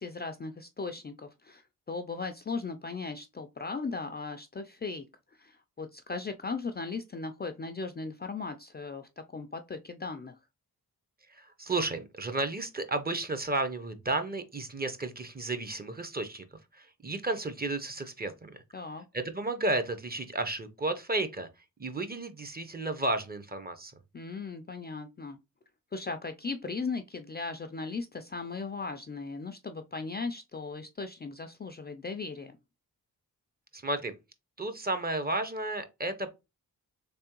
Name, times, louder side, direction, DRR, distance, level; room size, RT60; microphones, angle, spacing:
voice 1, 0.0-1.6 1.9-5.1 5.4-10.4 18.7-19.0 24.1-25.4 25.9-32.6, left 4 dB, 25° left, 0.4 m, -37 dB
voice 2, 11.3-16.5 16.7-18.6 19.1-21.5 21.8-23.9 33.7-34.2 34.6-36.3, right 2 dB, 25° right, 0.7 m, -33 dB
3.4 x 3.2 x 3.0 m
cardioid pair, 60°, 38 cm